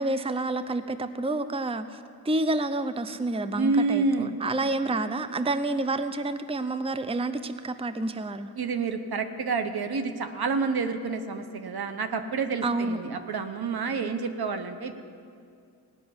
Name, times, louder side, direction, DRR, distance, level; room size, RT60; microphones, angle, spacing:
voice 1, 0.0-2.0 2.3-8.5 12.6-13.2, right 2 dB, 15° right, 11 dB, 0.6 m, -29 dB
voice 2, 3.6-4.4 8.5-15.0, right 4 dB, 70° right, 8 dB, 1.0 m, -28 dB
17.5 x 6.1 x 9.5 m, 2.4 s
cardioid pair, 65°, 38 cm